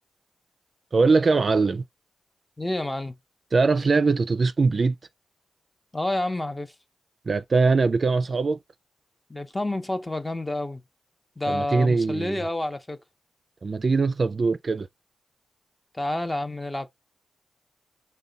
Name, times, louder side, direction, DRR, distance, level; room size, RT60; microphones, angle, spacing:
voice 1, 0.9-1.8 3.5-4.9 7.3-8.6 11.5-12.4 13.6-14.9, right 4 dB, 45° right, 0.3 m, -21 dB
voice 2, 2.6-3.2 5.9-6.7 9.3-10.8 11.4-13.0 15.9-16.9, left 1 dB, 15° left, 0.7 m, -29 dB
5.5 x 2.2 x 3.8 m
cardioid pair, 70°, 0 cm